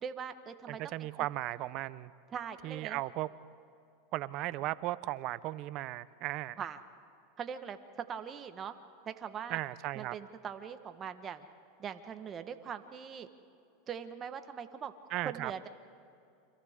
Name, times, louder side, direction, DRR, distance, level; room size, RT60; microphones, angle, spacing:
voice 1, 0.0-1.3 2.3-3.0 6.6-6.8 7.4-8.8 9.1-9.6 9.9-11.5 11.8-13.3 13.9-14.9 15.2-15.7, right 7 dB, 30° right, 8 dB, 1.4 m, -41 dB
voice 2, 0.7-2.1 2.6-3.3 4.1-6.6 9.5-10.1 15.1-15.5, right 16 dB, 50° right, 16 dB, 0.7 m, -36 dB
30.0 x 25.5 x 3.7 m, 2.5 s
hypercardioid pair, 110°, 0 cm